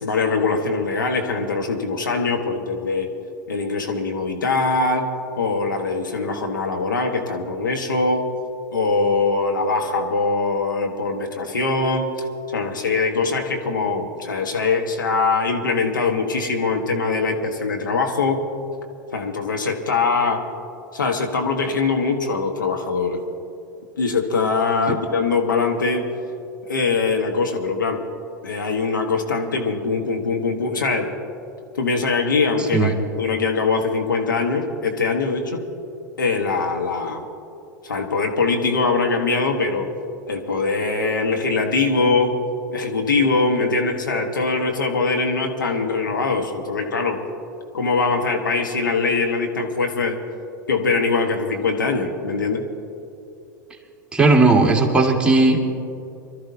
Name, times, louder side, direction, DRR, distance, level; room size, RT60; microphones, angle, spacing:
voice 1, 0.0-3.1 3.5-5.1 5.4-8.2 8.7-12.1 12.5-18.4 19.1-20.4 20.9-23.2 24.0-26.0 26.7-28.0 28.4-31.1 31.7-35.6 36.2-37.2 37.8-39.9 40.3-42.4 42.7-47.2 47.7-50.1 50.7-52.6, left 4 dB, 80° left, 3 dB, 1.4 m, -22 dB
voice 2, 54.1-55.6, right 3 dB, 10° right, 0 dB, 2.0 m, -16 dB
26.0 x 13.0 x 2.8 m, 2.7 s
figure-of-eight pair, 90°, 10 cm